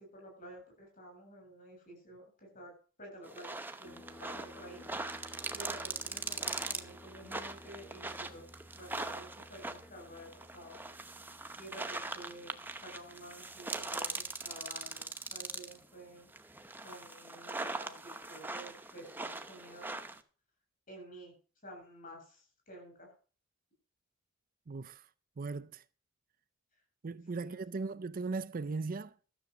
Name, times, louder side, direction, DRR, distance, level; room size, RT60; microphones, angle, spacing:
voice 1, 0.0-2.7 3.0-8.5 8.7-10.8 11.6-12.6 12.8-16.3 16.8-19.9 20.9-21.3 21.6-23.1 27.4-27.6, right 1 dB, 40° left, 7.6 m, -51 dB
sound 1, 3.2-15.9 16.3-20.2, right 3 dB, 10° right, 0.8 m, -41 dB
sound 2, 3.8-16.9, left 1 dB, 15° left, 2.0 m, -58 dB
voice 2, 24.7-25.0 25.4-25.8 27.0-29.1, right 4 dB, 40° right, 0.5 m, -38 dB
13.0 x 7.2 x 6.6 m
head